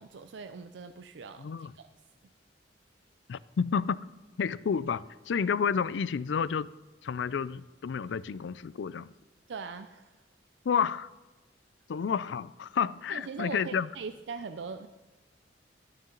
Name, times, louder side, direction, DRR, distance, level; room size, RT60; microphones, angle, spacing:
voice 1, 0.0-1.9 9.5-10.1 13.1-14.9, right 5 dB, 80° right, 9 dB, 0.5 m, -41 dB
voice 2, 1.4-1.7 3.3-4.0 4.4-6.7 7.0-9.1 10.7-11.1 11.9-13.9, left 6 dB, 80° left, 19 dB, 0.4 m, -30 dB
17.5 x 6.8 x 3.9 m, 1.2 s
head